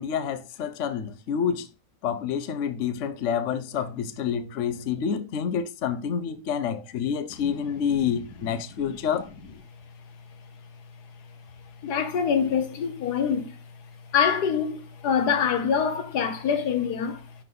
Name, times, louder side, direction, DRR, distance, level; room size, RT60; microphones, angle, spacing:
voice 1, 0.0-1.7 2.0-9.3, left 7 dB, 55° left, 0.9 m, -28 dB
voice 2, 11.8-13.6 14.1-17.3, left 7 dB, 75° left, 1.4 m, -25 dB
10.5 x 3.8 x 3.8 m
omnidirectional pair, 1.8 m